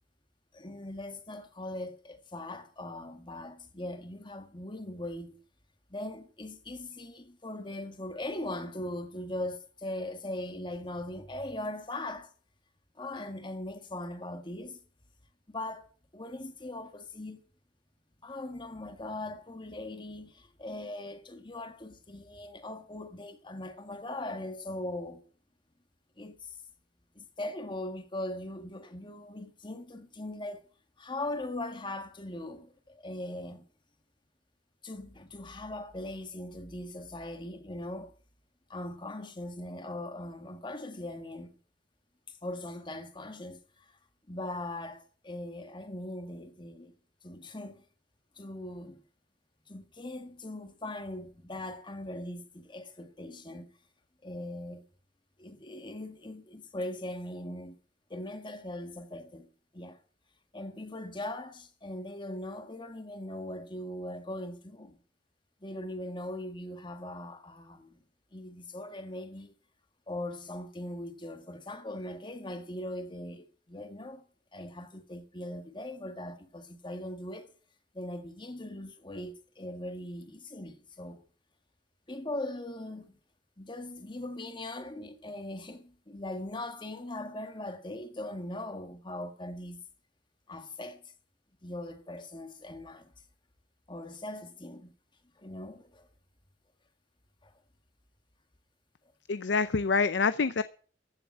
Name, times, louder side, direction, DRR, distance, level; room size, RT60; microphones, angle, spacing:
voice 1, 0.5-5.4 5.9-12.3 13.0-14.8 15.5-15.9 16.1-17.4 18.2-25.2 26.2-26.6 27.2-30.7 31.0-33.6 34.8-38.1 38.7-41.6 42.3-43.9 44.3-46.9 47.2-47.8 48.4-49.0 49.7-53.7 54.2-54.9 55.4-57.8 58.1-59.5 59.7-60.0 60.5-65.0 65.6-68.0 68.3-69.5 70.1-74.2 74.5-77.5 77.9-81.2 82.1-83.2 83.6-89.8 90.5-91.0 91.6-93.1 93.9-94.9 95.4-96.1 97.4-97.5, left 1 dB, 25° left, 1.7 m, -40 dB
voice 2, 99.3-100.6, left 4 dB, 75° left, 0.6 m, -26 dB
15.0 x 7.0 x 7.8 m
head